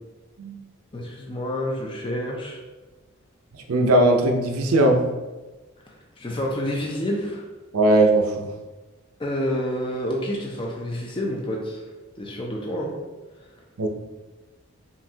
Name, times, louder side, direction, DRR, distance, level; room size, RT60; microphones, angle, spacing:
voice 1, 0.9-2.6 6.2-7.4 9.2-11.8 12.2-12.9, equal, 25° left, -1 dB, 0.4 m, -28 dB
voice 2, 3.7-5.0 7.7-8.5 13.8-13.9, right 1 dB, 85° right, 3 dB, 0.6 m, -19 dB
5.4 x 2.7 x 2.7 m, 1.2 s
head